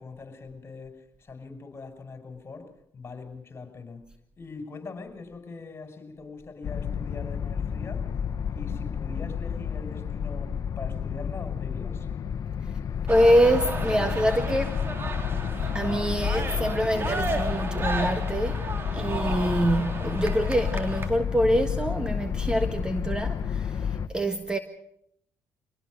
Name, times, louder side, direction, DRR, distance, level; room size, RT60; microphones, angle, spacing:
voice 1, 0.0-4.1 4.4-8.2 8.5-12.1, left 4 dB, 35° left, 6.0 m, -42 dB
sound 1, 6.6-24.1, left 7 dB, 50° left, 1.3 m, -30 dB
voice 2, 13.1-14.8 15.5-18.6 18.9-24.6, equal, 10° right, 1.6 m, -25 dB
sound 2, 13.1-21.1, right 3 dB, 30° right, 3.6 m, -34 dB
24.5 x 18.0 x 6.5 m
supercardioid pair, 85°, 7 cm